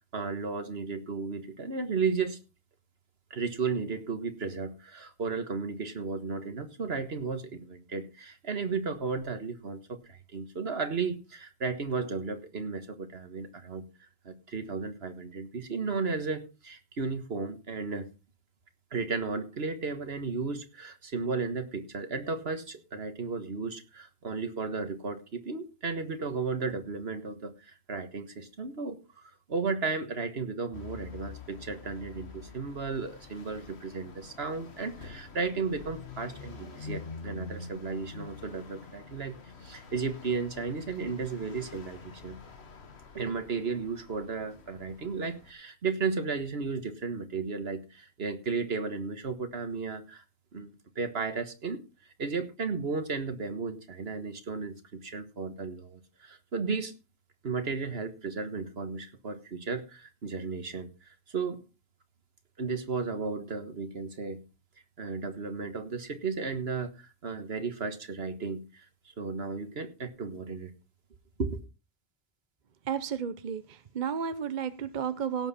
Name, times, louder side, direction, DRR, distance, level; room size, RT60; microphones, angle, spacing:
voice 1, 0.1-2.4 3.3-13.8 14.3-18.1 18.9-29.0 29.5-39.4 39.6-42.4 43.1-50.2 50.5-50.7 51.0-51.8 52.2-56.9 57.4-60.9 61.3-61.6 62.6-64.4 65.0-68.6 69.2-70.7 71.4-71.6, right 4 dB, 70° right, 9 dB, 1.7 m, -34 dB
sound 1, 30.7-45.5, left 4 dB, 85° left, 1.7 m, -46 dB
voice 2, 72.9-73.6 73.9-75.5, right 7 dB, 50° right, 12 dB, 0.8 m, -32 dB
17.0 x 7.6 x 4.2 m, 0.30 s
omnidirectional pair, 1.1 m